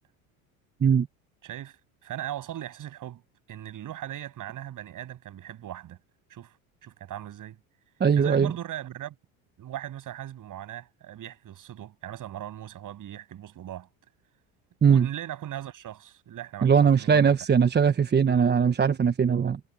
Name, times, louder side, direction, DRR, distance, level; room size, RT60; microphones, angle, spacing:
voice 1, 1.4-3.2 3.5-6.0 6.3-6.6 6.8-7.6 8.1-9.2 9.6-13.9 14.9-17.4, right 12 dB, 45° right, 7.8 m, -39 dB
voice 2, 8.0-8.5 14.8-15.1 16.6-19.6, right 7 dB, 25° right, 1.2 m, -20 dB
hypercardioid pair, 85°, 42 cm